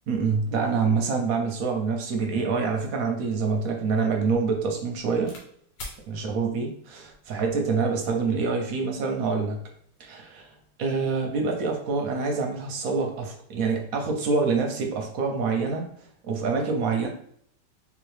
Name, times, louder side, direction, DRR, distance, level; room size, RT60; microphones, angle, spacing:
voice 1, 0.1-5.3 6.1-9.6 10.0-10.5 10.8-15.9 16.2-17.1, right 4 dB, 65° right, 2 dB, 0.9 m, -26 dB
sound 1, 2.6-5.5 5.8-6.0 6.9-7.3, left 2 dB, 75° left, 1.5 m, -45 dB
3.6 x 3.0 x 3.2 m, 0.65 s
omnidirectional pair, 1.9 m